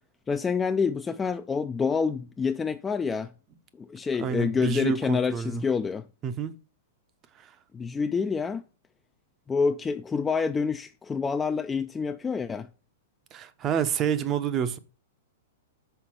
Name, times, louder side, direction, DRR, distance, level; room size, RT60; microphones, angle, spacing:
voice 1, 0.3-3.3 3.8-6.0 7.7-8.6 9.5-12.7, left 5 dB, 15° left, 0.3 m, -27 dB
voice 2, 4.2-5.6 6.2-6.6 7.4-7.5 13.3-14.8, right 8 dB, 30° right, 0.7 m, -28 dB
5.7 x 4.2 x 4.5 m
hypercardioid pair, 115°, 0 cm